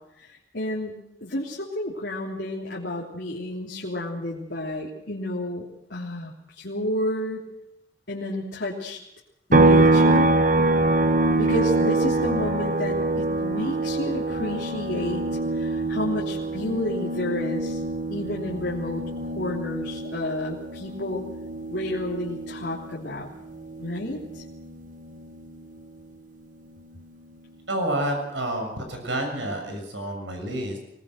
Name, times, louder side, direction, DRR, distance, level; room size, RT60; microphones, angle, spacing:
voice 1, 0.2-7.5 8.1-9.0 9.5-10.3 11.4-15.2 15.5-17.8 18.1-21.2 21.7-23.3 23.8-24.4, left 1 dB, 70° left, -4 dB, 3.3 m, -31 dB
sound 1, 9.5-23.1 23.4-25.6, right 2 dB, 45° right, 1.1 m, -24 dB
voice 2, 27.7-30.8, right 1 dB, 85° right, 3 dB, 7.0 m, -29 dB
24.0 x 20.0 x 6.5 m, 0.84 s
head